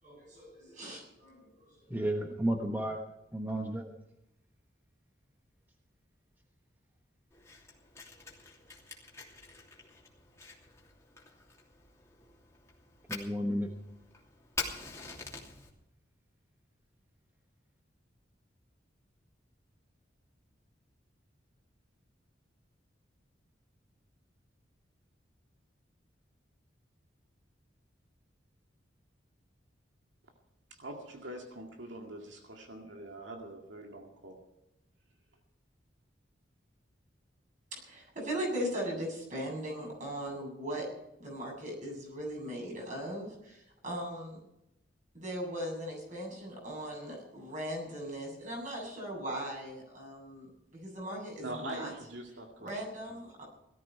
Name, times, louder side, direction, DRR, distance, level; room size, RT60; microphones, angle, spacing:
voice 1, 0.0-1.8 37.7-40.9 41.2-44.4 45.1-51.9 52.6-53.4, equal, 40° right, -1 dB, 7.7 m, -39 dB
voice 2, 1.9-3.0 3.3-3.9 13.1-13.7, right 1 dB, 10° right, 2 dB, 1.2 m, -32 dB
Fire, 7.3-15.7, left 4 dB, 15° left, 2.9 m, -45 dB
voice 3, 30.7-34.4 51.4-52.8 53.1-53.2, right 1 dB, 80° right, 2 dB, 2.2 m, -44 dB
18.0 x 13.5 x 4.6 m, 0.86 s
head